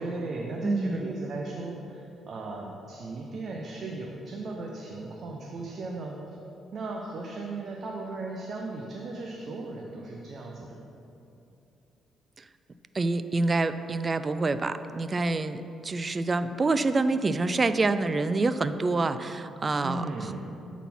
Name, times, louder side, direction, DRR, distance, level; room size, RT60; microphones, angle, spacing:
voice 1, 0.0-6.2 6.7-10.9 19.8-20.4, right 3 dB, 55° right, 0 dB, 0.7 m, -36 dB
voice 2, 0.6-1.1 12.9-20.0, right 3 dB, 30° right, 12 dB, 0.3 m, -26 dB
8.2 x 4.1 x 5.9 m, 2.8 s
cardioid pair, 90°, 0 cm